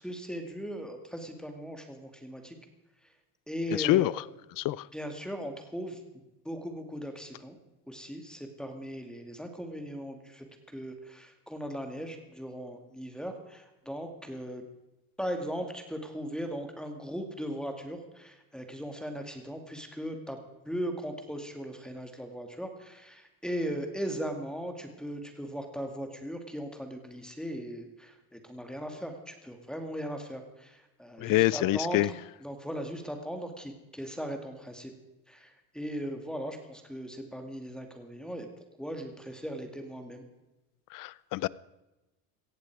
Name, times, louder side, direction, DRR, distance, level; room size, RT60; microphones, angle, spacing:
voice 1, 0.0-2.6 3.5-4.2 4.9-6.0 6.4-7.6 7.9-14.6 15.2-20.4 20.7-32.1 32.4-34.9 35.3-38.5 38.8-40.2, equal, ahead, 5 dB, 2.3 m, -38 dB
voice 2, 3.7-4.1 4.6-4.9 31.2-32.1 40.9-41.5, left 17 dB, 45° left, 21 dB, 0.6 m, -26 dB
18.0 x 14.5 x 4.8 m, 1.0 s
supercardioid pair, 115°, 46 cm